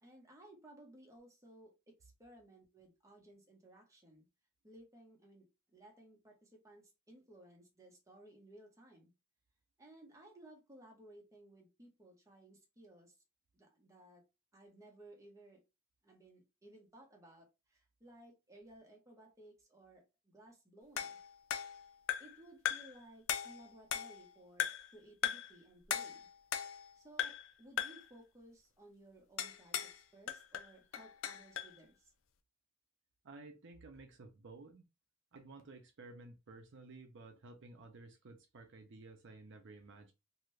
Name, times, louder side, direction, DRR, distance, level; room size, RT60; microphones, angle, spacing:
voice 1, 0.0-4.3 4.6-9.1 9.8-13.1 13.5-14.2 14.5-15.6 16.0-21.2 22.2-26.3 26.9-32.1, right 1 dB, 15° right, 1.0 m, -59 dB
sound 1, 21.0-22.4 22.7-23.0 23.3-24.3 24.6-24.9 25.2-25.6 25.9-26.9 27.2-27.5 27.8-28.1 29.4-30.0 30.3-31.8, left 9 dB, 70° left, 0.4 m, -38 dB
voice 2, 33.2-34.8 35.3-40.1, right 3 dB, 60° right, 0.6 m, -54 dB
2.7 x 2.5 x 3.1 m
head